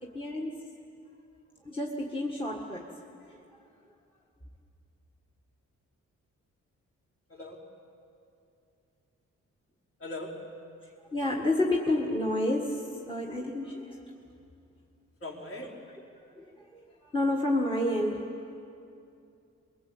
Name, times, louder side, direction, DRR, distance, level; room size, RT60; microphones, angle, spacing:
voice 1, 0.0-0.7 1.6-2.9 3.3-3.4 11.1-14.0 16.3-18.2, left 1 dB, 20° left, 0 dB, 1.7 m, -30 dB
voice 2, 7.3-7.7 10.0-10.6 15.2-15.8, left 2 dB, 50° left, -2 dB, 4.1 m, -40 dB
24.0 x 22.5 x 8.6 m, 2.6 s
wide cardioid pair, 155°, 29 cm